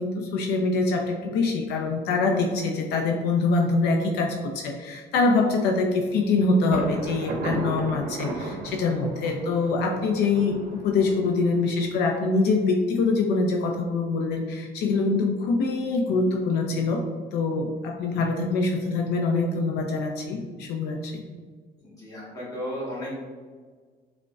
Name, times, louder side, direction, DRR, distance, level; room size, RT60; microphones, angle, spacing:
voice 1, 0.0-17.0 17.3-21.2, left 3 dB, 80° left, 2 dB, 0.4 m, -24 dB
Thunder, 6.7-12.4, right 3 dB, 65° right, 0.6 m, -35 dB
voice 2, 21.8-23.2, equal, 20° left, -6 dB, 1.3 m, -34 dB
4.8 x 2.1 x 2.3 m, 1.5 s
cardioid pair, 110°, 17 cm